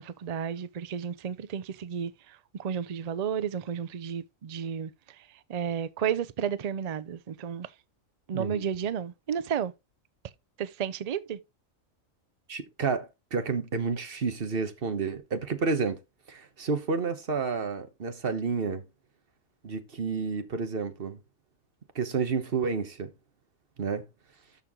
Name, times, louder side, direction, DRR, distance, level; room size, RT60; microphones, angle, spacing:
voice 1, 0.0-7.7 8.3-9.7 10.6-11.4, right 8 dB, 70° right, 0.3 m, -32 dB
voice 2, 8.3-8.6 12.5-16.0 16.3-18.8 19.6-21.2 21.9-23.1 23.8-24.0, right 5 dB, 45° right, 1.3 m, -30 dB
12.5 x 4.5 x 3.7 m
omnidirectional pair, 1.4 m